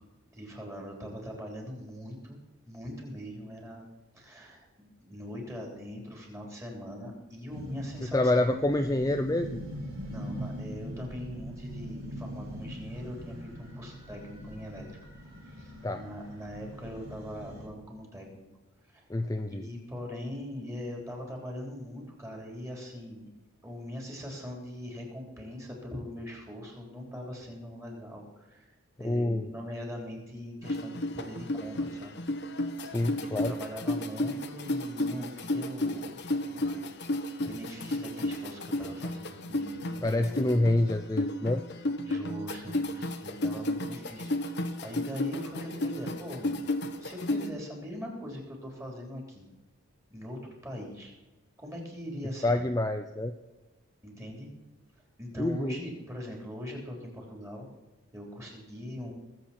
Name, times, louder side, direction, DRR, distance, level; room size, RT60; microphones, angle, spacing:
voice 1, 0.3-2.4 2.7-3.9 4.1-8.6 10.1-14.9 15.5-18.3 18.8-19.0 19.5-23.3 23.6-28.7 29.0-32.2 33.0-36.9 37.4-40.6 42.1-49.5 50.1-51.1 51.6-52.6 54.0-54.5 55.2-57.7 58.1-59.1, equal, 15° right, 0 dB, 3.5 m, -41 dB
sound 1, 7.5-17.7, equal, 75° right, 5.6 m, -42 dB
voice 2, 8.1-9.6 15.8-16.0 19.1-19.7 29.0-29.5 32.8-33.5 40.0-41.6 52.4-53.3 55.4-55.8, left 1 dB, 15° left, 6 dB, 0.5 m, -27 dB
sound 2, 30.6-47.5, left 1 dB, 50° left, 1.1 m, -33 dB
22.5 x 7.9 x 4.4 m, 1.1 s
head